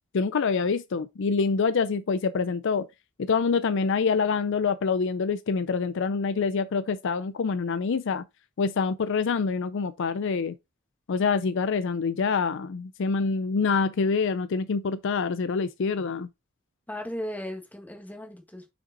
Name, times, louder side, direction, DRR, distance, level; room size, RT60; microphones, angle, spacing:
voice 1, 0.1-2.9 3.2-8.2 8.6-10.5 11.1-16.3, left 5 dB, 60° left, 0.4 m, -26 dB
voice 2, 16.9-18.7, equal, 10° left, 1.6 m, -36 dB
5.9 x 5.2 x 3.8 m
head